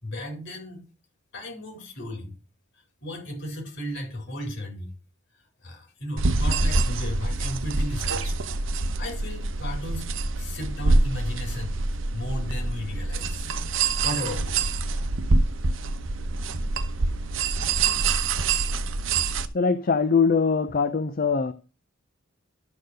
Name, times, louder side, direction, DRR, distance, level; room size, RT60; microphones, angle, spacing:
voice 1, 0.0-0.8 1.3-2.3 3.0-4.9 5.6-8.3 9.0-10.0 10.4-11.8 12.1-13.5 14.0-14.6, left 1 dB, 60° left, 4.4 m, -34 dB
sound 1, 6.2-19.5, right 3 dB, 70° right, 0.8 m, -25 dB
voice 2, 19.5-21.5, left 5 dB, 45° left, 0.6 m, -22 dB
12.0 x 4.5 x 6.3 m
head